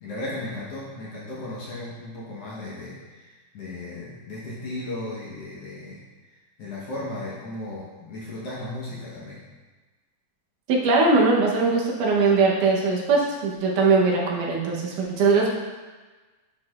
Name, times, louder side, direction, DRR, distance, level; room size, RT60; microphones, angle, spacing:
voice 1, 0.0-9.4, left 2 dB, 60° left, -6 dB, 1.9 m, -36 dB
voice 2, 10.7-15.5, right 3 dB, 80° right, -2 dB, 2.5 m, -21 dB
9.9 x 4.8 x 2.4 m, 1.3 s
omnidirectional pair, 3.6 m